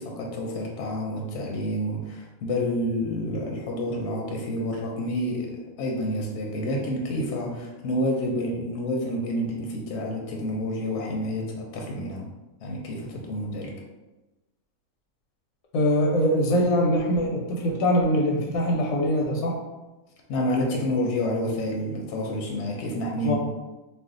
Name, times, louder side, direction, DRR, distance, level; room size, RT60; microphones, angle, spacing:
voice 1, 0.0-5.5 5.8-12.3 12.6-13.7 20.3-23.4, left 1 dB, 65° left, -1 dB, 0.8 m, -29 dB
voice 2, 15.7-19.6 23.2-23.4, equal, 90° left, -1 dB, 1.0 m, -23 dB
2.4 x 2.2 x 3.6 m, 1.1 s
omnidirectional pair, 1.4 m